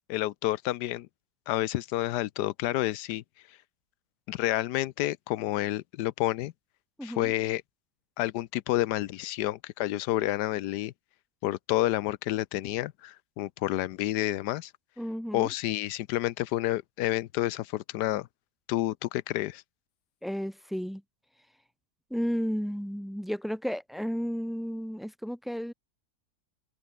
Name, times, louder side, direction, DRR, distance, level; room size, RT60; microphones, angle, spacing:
voice 1, 0.1-1.1 1.5-3.2 4.3-6.5 7.0-7.6 8.2-10.9 11.4-14.7 15.3-18.3 18.7-19.6, left 15 dB, 90° left, 1.2 m, -29 dB
voice 2, 7.0-7.3 15.0-15.5 20.2-21.0 22.1-25.7, equal, ahead, 0.3 m, -33 dB
open air
omnidirectional pair, 1.7 m